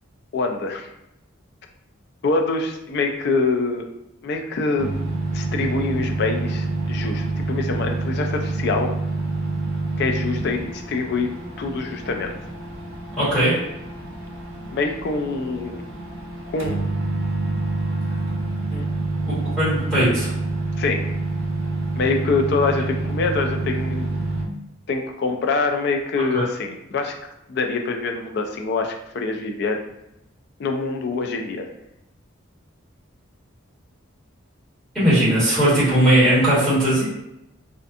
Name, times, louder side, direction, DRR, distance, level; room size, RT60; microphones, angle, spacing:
voice 1, 0.3-0.9 2.2-3.9 4.2-4.9 5.3-8.9 10.0-12.3 14.7-15.8 16.5-16.8 18.7-18.9 20.8-21.0 22.0-24.1 24.9-27.1 27.5-29.8 30.6-31.7, left 3 dB, 55° left, 4 dB, 0.3 m, -25 dB
sound 1, 4.8-24.4, right 3 dB, 75° right, 0.5 m, -27 dB
voice 2, 13.2-13.5 19.6-20.3 26.3-26.4 34.9-37.0, right 1 dB, ahead, -12 dB, 1.3 m, -18 dB
2.5 x 2.5 x 2.4 m, 0.83 s
head